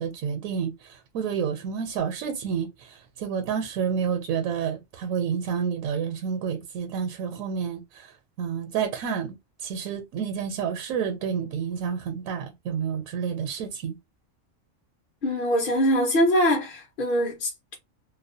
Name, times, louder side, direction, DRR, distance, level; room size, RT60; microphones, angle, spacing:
voice 1, 0.0-8.1 8.4-9.4 9.6-14.0, right 7 dB, 85° right, 1.0 m, -29 dB
voice 2, 15.2-17.7, equal, 55° left, 0.6 m, -23 dB
2.4 x 2.0 x 2.6 m
omnidirectional pair, 1.4 m